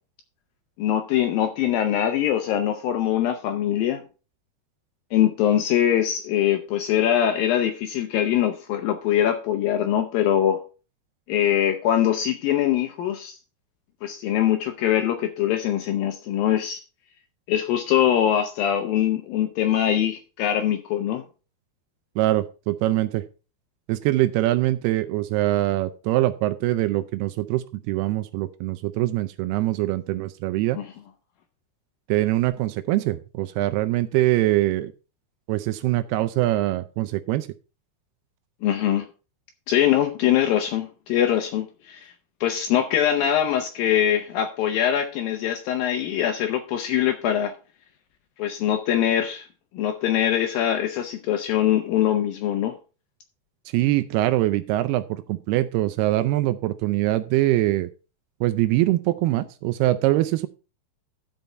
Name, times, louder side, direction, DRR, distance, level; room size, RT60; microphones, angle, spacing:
voice 1, 0.8-4.0 5.1-10.6 11.3-13.4 14.0-16.8 17.5-21.2 30.8-30.9 38.6-39.1 39.7-42.1 42.4-47.5 48.4-49.5 49.7-52.7, left 10 dB, 80° left, 7 dB, 2.1 m, -23 dB
voice 2, 22.2-23.2 23.9-30.8 32.1-34.9 35.5-37.5 53.7-57.9 58.4-60.5, right 16 dB, 80° right, 11 dB, 2.4 m, -23 dB
13.0 x 5.4 x 4.4 m, 0.34 s
omnidirectional pair, 4.9 m